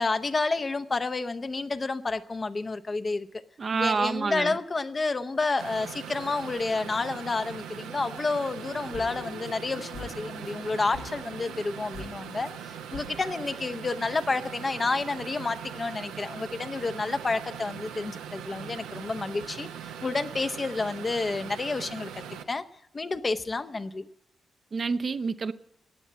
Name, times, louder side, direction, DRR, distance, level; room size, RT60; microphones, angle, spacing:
voice 1, 0.0-3.3 3.8-19.7 20.0-22.6 22.9-24.1, left 3 dB, 40° left, 0.8 m, -30 dB
voice 2, 3.6-4.5 24.7-25.5, right 4 dB, 50° right, 0.7 m, -27 dB
sound 1, 5.6-22.4, right 8 dB, 85° right, 0.8 m, -41 dB
sound 2, 8.6-13.6, left 4 dB, 85° left, 1.5 m, -45 dB
15.0 x 9.1 x 8.6 m
hypercardioid pair, 40°, 0 cm